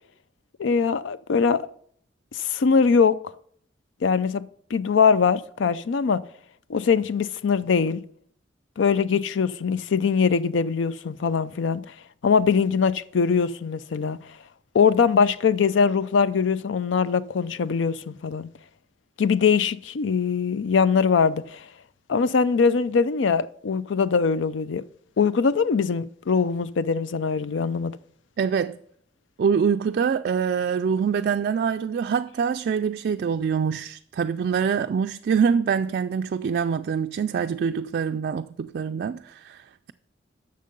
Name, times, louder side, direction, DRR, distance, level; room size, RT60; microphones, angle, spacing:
voice 1, 0.6-1.7 2.3-3.2 4.0-4.4 4.7-6.2 6.7-8.0 8.8-11.8 12.2-14.2 14.7-18.5 19.2-21.6 22.1-24.8 25.2-28.0, left 5 dB, 85° left, 0.5 m, -22 dB
voice 2, 28.4-28.8 29.4-39.9, right 6 dB, 55° right, 0.3 m, -25 dB
10.5 x 6.6 x 5.3 m
head